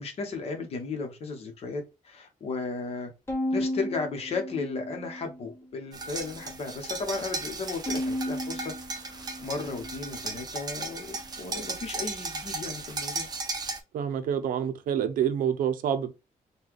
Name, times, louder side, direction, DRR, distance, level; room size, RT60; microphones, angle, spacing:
voice 1, 0.0-3.1 3.5-8.7 9.0-13.3, left 4 dB, 45° left, 0.9 m, -35 dB
Bowed string instrument, 3.3-5.6 6.1-6.9 7.9-10.4, left 1 dB, 15° left, 1.1 m, -35 dB
sound 1, 5.9-13.8, right 3 dB, 30° right, 0.5 m, -36 dB
voice 2, 13.9-16.1, right 9 dB, 85° right, 0.5 m, -27 dB
3.9 x 2.2 x 3.1 m
wide cardioid pair, 180°, 14 cm